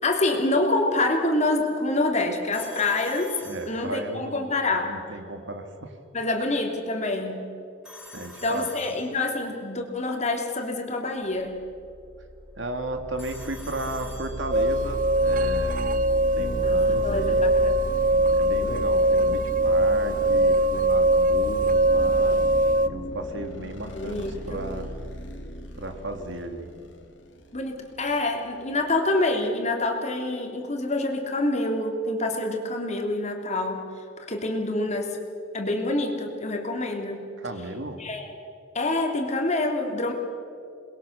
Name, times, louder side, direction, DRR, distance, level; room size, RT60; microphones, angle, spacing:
voice 1, 0.0-3.4 3.7-4.9 6.1-7.4 8.4-11.5 16.6-18.0 23.9-24.6 27.5-33.8 34.2-35.2 35.5-37.2 38.0-38.3 38.7-40.1, left 2 dB, 35° left, 2 dB, 3.1 m, -26 dB
Telephone, 2.5-4.3 7.8-9.5 13.2-14.9, left 1 dB, 5° right, 6.7 m, -46 dB
voice 2, 3.4-4.5 4.8-6.0 8.1-8.7 12.6-15.9 16.4-17.4 18.3-22.4 22.9-24.9 25.7-26.7 37.4-38.0, right 2 dB, 70° right, 6 dB, 2.4 m, -35 dB
sound 1, 11.6-29.0, equal, 70° left, 2.5 m, -35 dB
sound 2, 14.5-22.9, right 1 dB, 45° right, 0.7 m, -22 dB
28.0 x 21.5 x 6.7 m, 2.5 s
head